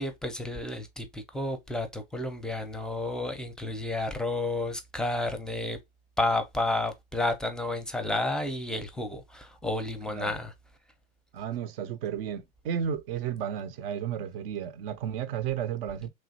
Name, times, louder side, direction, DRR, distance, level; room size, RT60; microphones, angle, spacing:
voice 1, 0.0-5.8 6.2-10.5, left 2 dB, ahead, 0.5 m, -31 dB
voice 2, 11.3-16.1, right 9 dB, 65° right, 0.6 m, -33 dB
3.1 x 2.4 x 2.7 m
hypercardioid pair, 100°, 31 cm